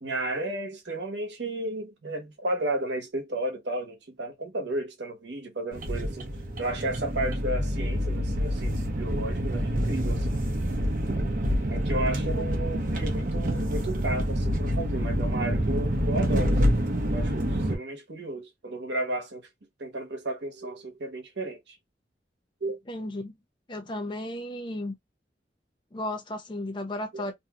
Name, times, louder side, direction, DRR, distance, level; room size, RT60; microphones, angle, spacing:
voice 1, 0.0-6.3 6.6-10.4 11.7-16.7 17.1-19.5 19.8-21.8 22.6-22.8 27.1-27.3, right 1 dB, 80° right, 1.0 m, -33 dB
sound 1, 5.7-17.8, equal, 50° right, 0.7 m, -27 dB
voice 2, 22.9-23.4 23.7-24.9 25.9-27.3, left 1 dB, 25° left, 0.6 m, -34 dB
2.8 x 2.7 x 2.3 m
head